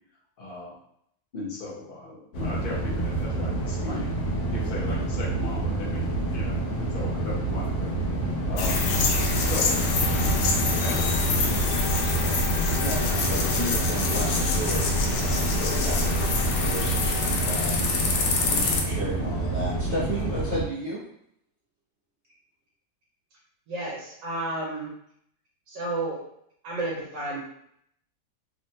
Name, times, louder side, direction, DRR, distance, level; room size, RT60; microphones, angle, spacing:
voice 1, 0.4-0.7 1.3-4.1 4.5-7.9 8.5-8.8 9.5-9.7 10.1-11.5, left 2 dB, 50° left, -4 dB, 0.7 m, -38 dB
sound 1, 2.3-20.6, right 2 dB, 90° left, 1.4 m, -28 dB
sound 2, 8.6-18.8, left 3 dB, 70° left, 0.9 m, -26 dB
voice 2, 12.8-16.0 16.6-21.0, right 1 dB, 60° right, -8 dB, 0.7 m, -34 dB
voice 3, 23.7-24.9 25.7-26.2 26.6-27.4, right 2 dB, 80° right, -5 dB, 1.4 m, -31 dB
3.4 x 2.1 x 2.7 m, 0.70 s
omnidirectional pair, 1.9 m